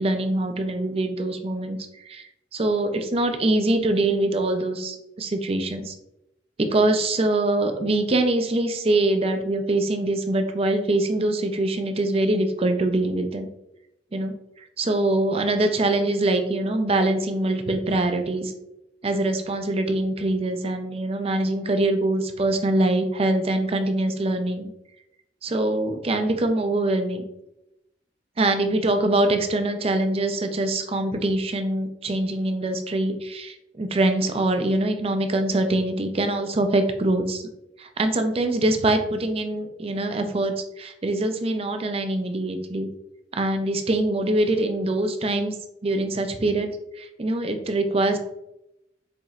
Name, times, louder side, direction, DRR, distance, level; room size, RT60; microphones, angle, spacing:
voice 1, 0.0-5.9 6.7-13.5 14.1-18.5 19.0-24.7 25.4-27.2 28.4-37.4 37.8-42.9 43.3-45.5 45.8-46.7 47.0-48.2, right 2 dB, 35° right, 6 dB, 0.5 m, -24 dB
7.0 x 3.0 x 2.4 m, 0.86 s
head